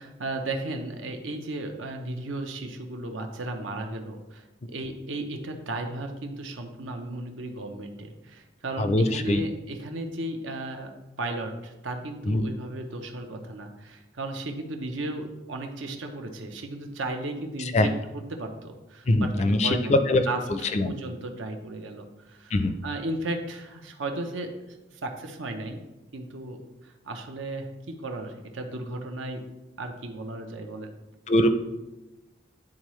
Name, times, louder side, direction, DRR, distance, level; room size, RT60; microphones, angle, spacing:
voice 1, 0.0-10.9 11.2-22.6 22.8-25.8 26.1-29.4 29.8-30.9, right 2 dB, 85° right, 4 dB, 0.8 m, -35 dB
voice 2, 8.8-9.4 12.3-12.5 17.7-17.9 19.1-20.2 20.7-20.9 22.5-22.7 31.3-31.5, left 1 dB, 35° left, 9 dB, 0.4 m, -22 dB
9.9 x 3.7 x 3.1 m, 1.0 s
head